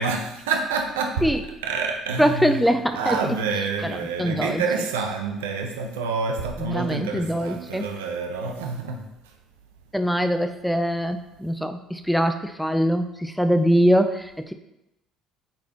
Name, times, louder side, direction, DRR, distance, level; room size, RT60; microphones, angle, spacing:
voice 1, 0.0-1.3 1.6-2.7 2.9-9.3, right 4 dB, 85° right, 4 dB, 0.7 m, -28 dB
voice 2, 2.2-3.2 4.2-4.6 6.7-7.8 9.9-14.5, equal, ahead, 8 dB, 0.5 m, -22 dB
8.7 x 4.1 x 2.9 m, 0.86 s
hypercardioid pair, 65°, 0 cm